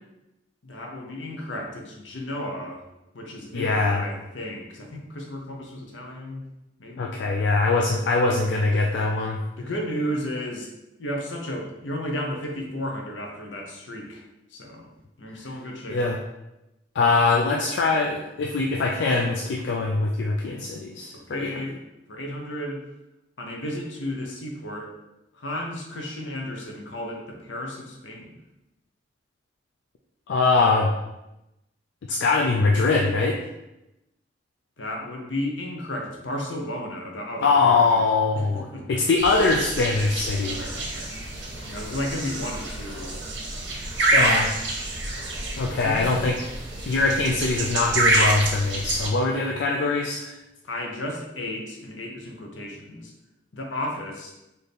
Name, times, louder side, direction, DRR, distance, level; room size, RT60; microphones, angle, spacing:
voice 1, 0.6-2.9 3.1-6.4 6.8-7.2 9.6-10.7 11.0-14.2 14.5-14.9 15.2-16.0 21.1-21.8 22.1-22.8 23.4-24.9 25.3-28.4 34.8-38.0 38.3-39.0 40.4-41.0 41.7-43.2 45.7-46.2 48.9-49.0 50.7-53.1 53.5-54.3, left 1 dB, 85° left, 1 dB, 0.8 m, -33 dB
voice 2, 3.5-4.0 7.0-9.4 15.9-16.2 17.0-21.6 30.3-30.9 32.1-33.4 37.4-40.6 44.1-44.6 45.6-46.4 46.9-50.4, left 3 dB, 65° left, 1 dB, 0.3 m, -22 dB
sound 1, 39.2-49.1, right 2 dB, 70° right, 0.9 m, -27 dB
4.1 x 2.7 x 3.3 m, 0.93 s
head